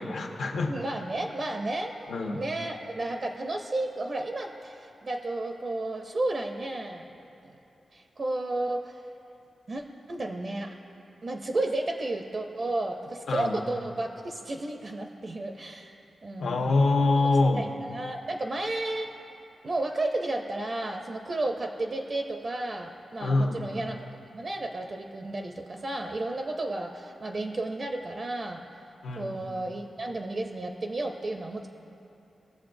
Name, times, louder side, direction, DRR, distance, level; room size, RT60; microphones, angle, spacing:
voice 1, 0.0-0.8 2.1-2.4 13.3-13.5 16.4-17.7 23.2-23.6 29.0-29.4, left 3 dB, 80° left, 1 dB, 1.0 m, -25 dB
voice 2, 0.7-7.1 7.4-7.6 7.9-9.0 9.7-9.8 10.1-10.7 11.2-16.0 16.2-16.6 17.2-17.3 17.5-19.1 19.6-24.0 24.3-28.6 29.1-31.7, right 2 dB, 40° right, 3 dB, 0.5 m, -32 dB
19.0 x 7.0 x 2.6 m, 2.7 s
wide cardioid pair, 140°, 0 cm